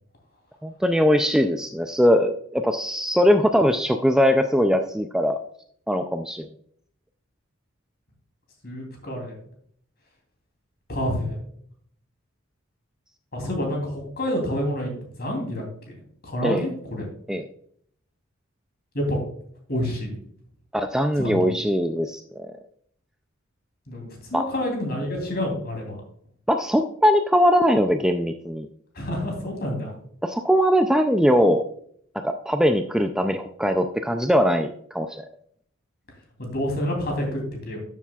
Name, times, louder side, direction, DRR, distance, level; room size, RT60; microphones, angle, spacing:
voice 1, 0.6-5.4 5.9-6.5 16.4-16.7 17.3-17.4 20.7-22.5 24.3-24.4 26.5-28.7 30.2-31.6 32.1-35.2, equal, 5° right, 6 dB, 0.3 m, -21 dB
voice 2, 8.6-9.4 10.9-11.4 13.3-14.9 15.2-16.0 16.2-17.1 18.9-19.2 19.7-20.2 21.2-21.6 23.9-26.0 28.9-29.9 36.4-37.8, left 1 dB, 50° left, 1 dB, 3.0 m, -28 dB
12.5 x 7.2 x 2.3 m, 0.65 s
head